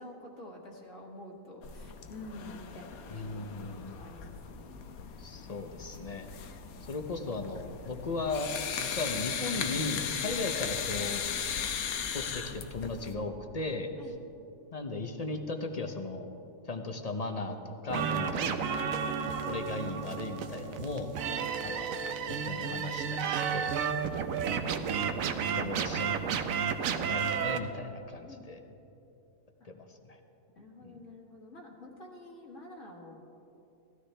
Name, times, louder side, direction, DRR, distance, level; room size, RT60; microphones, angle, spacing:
voice 1, 0.0-4.8 14.0-14.2 18.3-18.5 19.2-19.4 21.3-21.5 23.9-24.2 25.4-26.1 28.2-28.5 30.6-33.2, left 1 dB, 60° left, -1 dB, 2.0 m, -49 dB
sound 1, 1.6-13.1, left 7 dB, 85° left, 1.2 m, -37 dB
voice 2, 3.1-4.0 5.2-6.3 6.9-8.5 8.8-11.2 12.1-13.9 14.7-16.3 16.6-18.9 19.5-21.1 21.6-21.9 22.3-23.7 25.5-26.1 27.1-28.6 29.6-30.2 30.8-31.0, left 3 dB, 40° left, 5 dB, 0.6 m, -37 dB
sound 2, 17.9-27.6, right 6 dB, 75° right, 1.1 m, -32 dB
16.5 x 12.5 x 3.3 m, 2.8 s
omnidirectional pair, 1.5 m